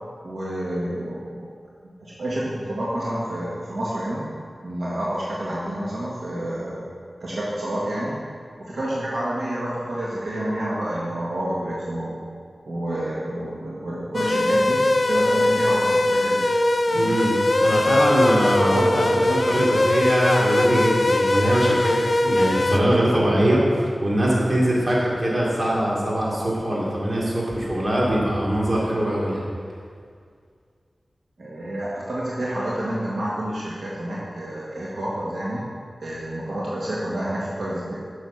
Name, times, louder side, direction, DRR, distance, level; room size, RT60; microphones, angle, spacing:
voice 1, 0.2-1.5 2.0-4.2 4.6-6.8 7.2-8.1 8.6-12.2 12.7-14.8 15.1-16.5 16.9-17.1 31.4-35.7 36.0-37.9, right 1 dB, 80° right, -7 dB, 1.6 m, -29 dB
sound 1, 14.1-22.8, left 1 dB, 50° left, 0.5 m, -20 dB
voice 2, 16.9-29.4, right 1 dB, 50° right, -5 dB, 2.6 m, -22 dB
8.0 x 6.5 x 5.7 m, 2.1 s
wide cardioid pair, 60°, 0 cm